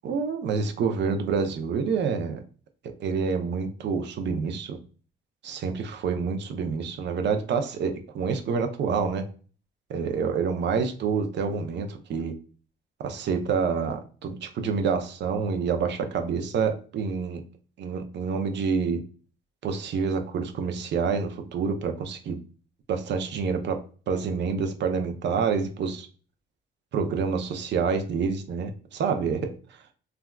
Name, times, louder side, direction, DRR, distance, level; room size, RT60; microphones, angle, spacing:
voice 1, 0.0-2.4 3.0-4.8 5.4-9.2 9.9-12.3 13.0-17.4 17.8-19.0 19.6-22.4 22.9-23.8 24.1-26.1 26.9-29.5, right 5 dB, 65° right, 6 dB, 0.5 m, -27 dB
3.4 x 2.3 x 2.2 m, 0.40 s
cardioid pair, 90°, 20 cm